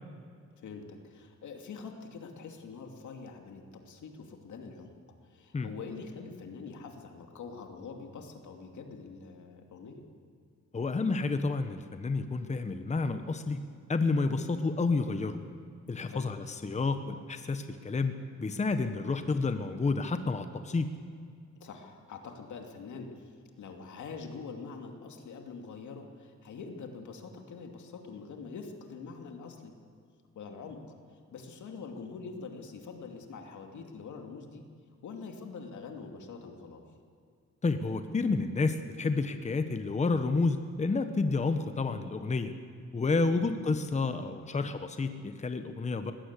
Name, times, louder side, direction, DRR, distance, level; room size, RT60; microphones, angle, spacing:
voice 1, 0.6-4.9 5.2-10.0 16.1-16.3 21.6-29.7 30.3-34.6 35.0-36.8 43.3-43.5, left 4 dB, 80° left, 3 dB, 2.6 m, -44 dB
voice 2, 10.7-13.6 13.9-15.4 15.9-20.9 37.6-42.5 42.9-46.1, left 3 dB, 25° left, 9 dB, 1.0 m, -30 dB
20.0 x 16.5 x 8.2 m, 2.2 s
cardioid pair, 125°, 29 cm